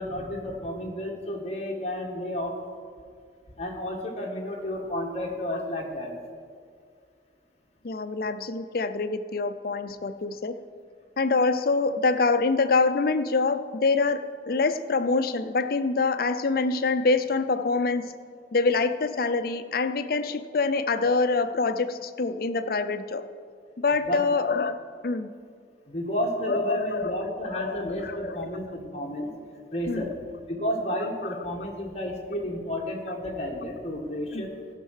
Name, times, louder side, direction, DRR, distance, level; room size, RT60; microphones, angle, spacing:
voice 1, 0.0-2.6 3.6-6.1 24.1-24.2 25.9-29.3 29.7-30.1 30.5-34.5, equal, 35° left, 0 dB, 1.5 m, -31 dB
voice 2, 7.8-10.5 11.2-18.1 18.5-23.2 23.8-24.8 25.0-25.3 26.5-28.5 29.9-30.0 34.3-34.5, left 3 dB, 50° left, 10 dB, 0.5 m, -25 dB
15.0 x 5.6 x 6.4 m, 2.1 s
head